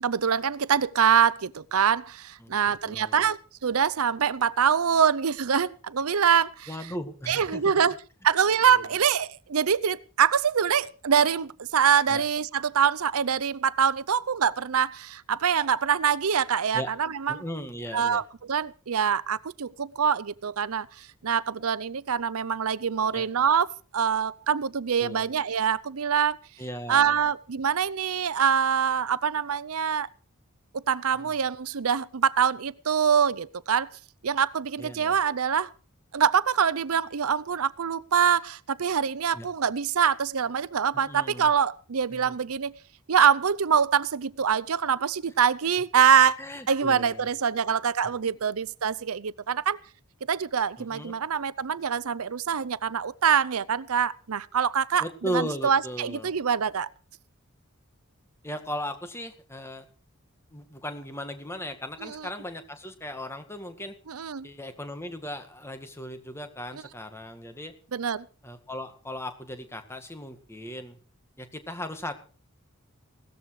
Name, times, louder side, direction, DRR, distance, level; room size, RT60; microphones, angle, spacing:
voice 1, 0.0-6.7 7.3-8.0 8.2-17.4 17.9-23.7 23.9-26.4 26.9-30.1 30.7-33.9 34.2-35.7 36.1-42.7 43.1-46.4 46.7-49.8 50.3-55.0 55.3-56.9 62.0-62.2 64.1-64.5 67.9-68.3, right 7 dB, 85° right, 0.6 m, -24 dB
voice 2, 2.8-3.3 6.7-7.7 8.7-8.8 12.1-12.2 16.7-16.9 17.3-18.2 23.1-23.3 25.0-25.2 26.6-27.2 31.1-31.4 34.8-35.2 39.3-39.5 40.9-41.5 42.1-42.4 46.4-47.3 50.8-51.1 55.0-56.4 58.4-59.8 60.5-64.0 64.4-67.7 68.4-71.0 71.4-72.1, equal, 10° left, 2.0 m, -37 dB
17.5 x 14.0 x 4.8 m
head